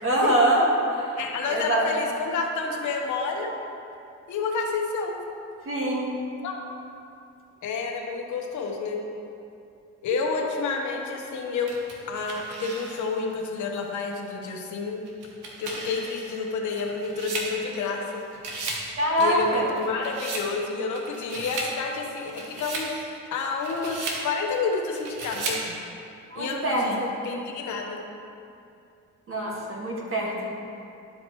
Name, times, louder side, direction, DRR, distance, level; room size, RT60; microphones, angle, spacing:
voice 1, 0.0-1.2 1.5-1.9 5.6-6.1 19.0-19.6 26.3-27.1 29.3-30.5, right 1 dB, 45° right, -3 dB, 1.7 m, -24 dB
voice 2, 1.2-3.5 4.3-5.2 6.4-6.6 7.6-9.0 10.0-11.7 12.1-15.0 15.6-18.2 19.2-25.8 26.4-28.0, left 4 dB, 75° left, 0 dB, 1.1 m, -29 dB
sound 1, 11.7-13.2 13.8-13.9 15.1-18.1 18.3-18.9 19.2-20.5 20.9-21.7 22.2-22.9 23.4-24.2 24.9-25.7, right 3 dB, 90° right, 1.2 m, -35 dB
11.5 x 5.1 x 3.0 m, 2.6 s
cardioid pair, 90°, 30 cm